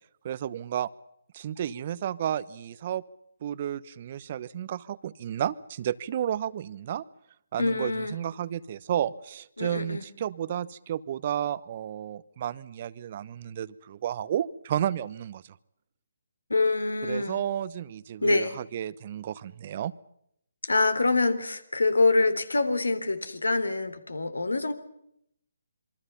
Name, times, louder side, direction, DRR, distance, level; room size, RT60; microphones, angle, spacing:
voice 1, 0.2-0.9 1.3-3.0 3.4-7.0 7.5-15.4 17.0-19.9, right 10 dB, 40° right, 17 dB, 1.0 m, -32 dB
voice 2, 7.6-8.1 9.6-10.0 16.5-17.4 18.2-18.5 20.6-24.7, left 3 dB, 80° left, 12 dB, 3.4 m, -25 dB
27.0 x 23.5 x 5.6 m, 0.74 s
figure-of-eight pair, 145°, 0 cm